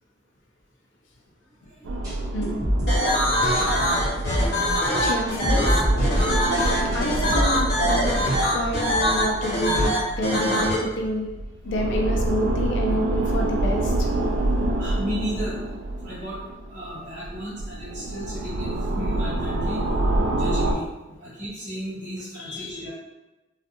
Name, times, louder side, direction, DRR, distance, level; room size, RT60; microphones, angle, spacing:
sound 1, 1.8-16.9 17.2-20.7, right 1 dB, 70° right, 0.3 m, -27 dB
sound 2, 2.0-2.1 2.4-3.6 3.9-5.2 5.4-7.0 7.3-7.8, equal, 20° right, 0.9 m, -27 dB
voice 1, 2.3-2.6 4.0-4.2 5.0-5.8 6.9-8.1 8.5-11.3 11.6-13.9 22.4-22.8, equal, 80° left, 1 dB, 0.5 m, -28 dB
sound 3, 2.9-10.8, equal, 65° left, 0.9 m, -23 dB
voice 2, 14.8-15.6 16.0-16.4 16.7-19.8 20.3-20.8 21.2-22.9, equal, 45° right, -9 dB, 1.2 m, -34 dB
2.3 x 2.2 x 2.8 m, 1.1 s
head